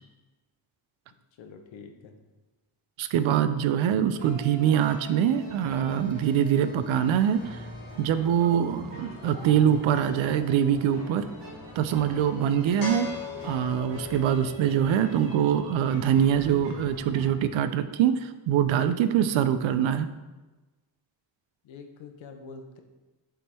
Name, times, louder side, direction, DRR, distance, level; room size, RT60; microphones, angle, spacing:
voice 1, 1.4-2.2 13.1-13.3 21.6-22.8, left 5 dB, 80° left, 5 dB, 0.9 m, -46 dB
voice 2, 3.0-7.6 8.0-11.2 11.8-13.1 13.4-20.1, right 9 dB, 85° right, 11 dB, 0.6 m, -24 dB
sound 1, 4.2-17.3, equal, 65° right, 1.6 m, -45 dB
sound 2, 7.1-15.3, left 5 dB, 50° left, 1.4 m, -42 dB
6.9 x 3.7 x 4.3 m, 1.1 s
wide cardioid pair, 155°, 45 cm